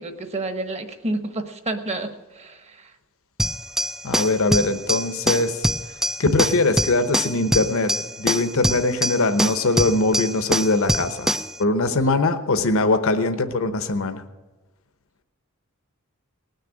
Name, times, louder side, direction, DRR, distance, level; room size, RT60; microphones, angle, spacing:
voice 1, 0.0-2.1 2.3-2.9, right 2 dB, 30° right, 7 dB, 1.2 m, -29 dB
sound 1, 3.4-11.6, equal, ahead, 0.4 m, -24 dB
voice 2, 4.0-5.6 6.2-7.9 8.2-14.2, left 2 dB, 65° left, 8 dB, 1.0 m, -21 dB
19.0 x 6.7 x 9.0 m, 1.2 s
head